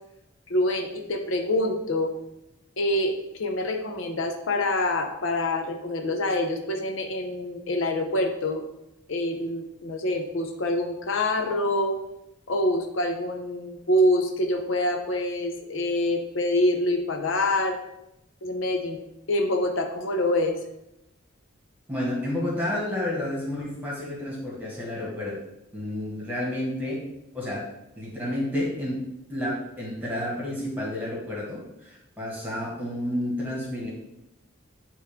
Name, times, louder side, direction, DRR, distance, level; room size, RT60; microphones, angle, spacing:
voice 1, 0.5-2.1 2.8-8.7 9.1-12.0 12.5-17.8 18.4-19.0 19.3-20.6, left 1 dB, 75° left, 4 dB, 0.7 m, -26 dB
voice 2, 21.9-25.3 25.7-27.0 27.3-27.7 28.0-29.0 29.3-33.9, left 1 dB, 10° right, -4 dB, 1.6 m, -30 dB
9.0 x 3.1 x 3.5 m, 0.87 s
head